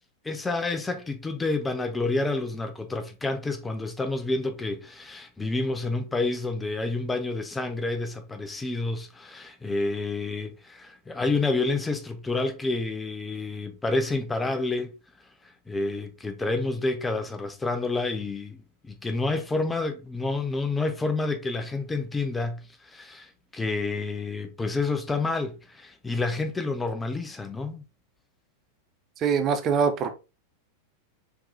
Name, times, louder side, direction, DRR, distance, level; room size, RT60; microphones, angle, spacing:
voice 1, 0.2-14.9 15.7-18.6 18.8-27.8, left 3 dB, 10° left, 0.6 m, -29 dB
voice 2, 29.2-30.1, right 6 dB, 30° right, 0.6 m, -23 dB
4.6 x 3.7 x 2.6 m
figure-of-eight pair, 90°, 0 cm